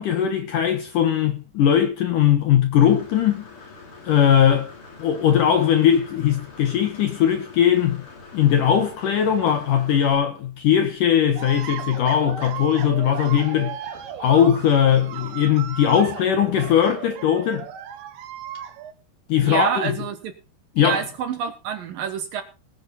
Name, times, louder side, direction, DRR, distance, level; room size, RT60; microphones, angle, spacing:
voice 1, 0.0-3.4 4.1-4.7 5.0-8.0 8.3-13.8 14.2-17.7 19.3-19.7 20.8-21.0, left 9 dB, 65° left, 2.2 m, -19 dB
Engine / Mechanisms, 2.8-10.1, left 3 dB, 35° left, 3.7 m, -44 dB
sound 1, 11.4-18.9, right 9 dB, 85° right, 3.6 m, -36 dB
voice 2, 19.4-20.3 20.8-22.4, right 8 dB, 70° right, 2.4 m, -27 dB
20.5 x 8.0 x 4.2 m
omnidirectional pair, 5.1 m